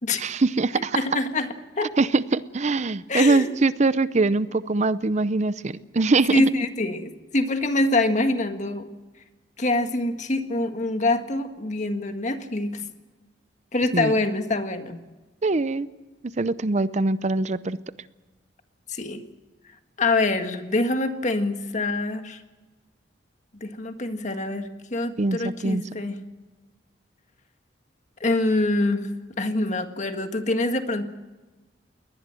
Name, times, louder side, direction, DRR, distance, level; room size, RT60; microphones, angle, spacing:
voice 1, 0.2-1.0 2.0-6.4 13.9-14.1 15.4-15.9 16.2-17.8 25.2-25.8, right 3 dB, 40° right, 15 dB, 0.6 m, -23 dB
voice 2, 0.9-1.9 3.1-3.5 6.3-8.9 9.6-12.8 13.7-15.0 18.9-19.2 20.0-22.4 23.5-26.2 28.2-29.1 29.4-31.1, left 2 dB, 45° left, 7 dB, 1.7 m, -25 dB
22.0 x 19.5 x 7.7 m, 1.2 s
head